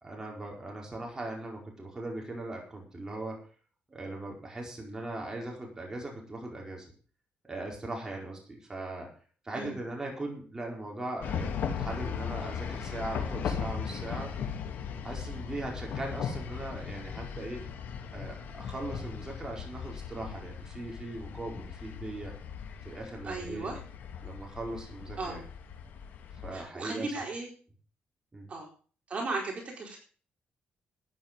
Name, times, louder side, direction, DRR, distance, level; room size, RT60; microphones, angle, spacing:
voice 1, 0.0-3.4 3.9-6.9 7.4-9.1 9.4-14.3 15.0-17.7 18.1-22.3 22.8-23.7 24.2-25.4 26.4-27.2 28.3-28.5, right 2 dB, 20° right, -1 dB, 4.7 m, -39 dB
sound 1, 11.2-26.6, left 7 dB, 75° left, 2.7 m, -38 dB
voice 2, 23.2-23.8 25.2-25.4 26.5-27.5 28.5-28.7 29.1-30.0, right 3 dB, 40° right, 0 dB, 4.5 m, -36 dB
13.5 x 10.0 x 5.3 m, 0.40 s
cardioid pair, 125°, 3 cm